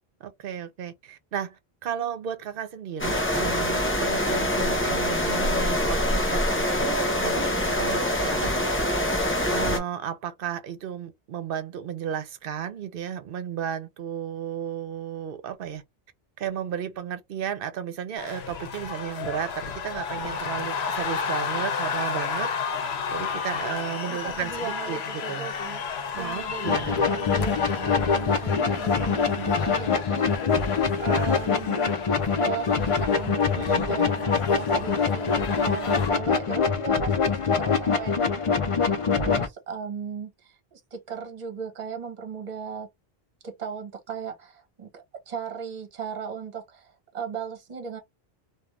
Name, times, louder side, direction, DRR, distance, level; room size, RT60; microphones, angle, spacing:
voice 1, 0.2-8.7 9.5-15.8 16.4-19.5 19.8-22.5 23.1-25.0 25.3-25.5 26.1-26.9 33.5-34.1, right 9 dB, 65° right, 0.8 m, -34 dB
sound 1, 3.0-9.8, left 1 dB, 15° left, 0.7 m, -25 dB
sound 2, 18.2-36.1, left 6 dB, 85° left, 0.9 m, -33 dB
voice 2, 24.1-31.9 32.4-33.4 33.9-42.9 43.4-48.0, right 6 dB, 45° right, 1.0 m, -37 dB
sound 3, 26.7-39.5, left 5 dB, 45° left, 0.4 m, -24 dB
2.5 x 2.3 x 3.1 m
omnidirectional pair, 1.0 m